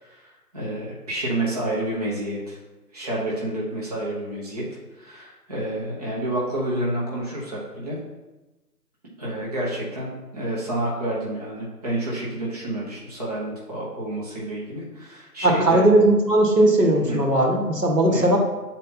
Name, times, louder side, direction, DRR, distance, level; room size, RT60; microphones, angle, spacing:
voice 1, 0.0-2.6 2.9-4.6 4.9-8.0 9.2-15.8 17.0-17.3 18.1-18.4, right 1 dB, 25° right, -6 dB, 1.0 m, -29 dB
voice 2, 15.4-18.4, right 1 dB, 75° right, 0 dB, 1.7 m, -18 dB
6.9 x 4.1 x 4.0 m, 1.1 s
figure-of-eight pair, 160°, 49 cm